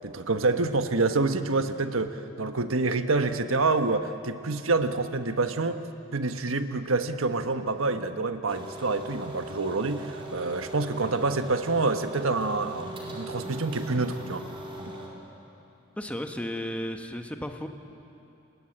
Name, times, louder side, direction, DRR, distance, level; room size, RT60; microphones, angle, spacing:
voice 1, 0.0-5.8 6.1-14.4, right 3 dB, 90° right, 8 dB, 1.3 m, -27 dB
sound 1, 8.5-15.1, right 1 dB, 25° right, 4.2 m, -40 dB
voice 2, 16.0-17.7, equal, 5° left, 5 dB, 1.2 m, -34 dB
29.5 x 20.5 x 8.8 m, 2.8 s
head